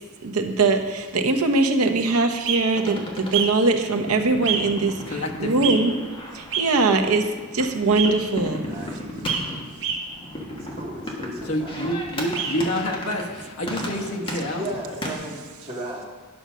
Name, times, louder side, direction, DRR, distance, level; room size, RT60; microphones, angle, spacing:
voice 1, 0.2-6.0 6.3-8.6, right 3 dB, 85° right, 5 dB, 0.9 m, -22 dB
sound 1, 2.4-2.6 3.3-3.5 4.4-4.6 5.6-5.8 6.5-6.7 8.0-8.1 9.3-9.4 9.8-10.0 12.3-12.5, right 7 dB, 60° right, 1.3 m, -25 dB
sound 2, 2.8-15.1, left 1 dB, 25° left, 1.4 m, -35 dB
voice 2, 5.1-5.8 11.4-14.7, equal, 80° left, 0 dB, 1.1 m, -28 dB
voice 3, 8.7-9.1 10.6-11.7 14.5-16.0, right 1 dB, 30° right, -3 dB, 1.9 m, -35 dB
9.8 x 5.5 x 6.2 m, 1.4 s
head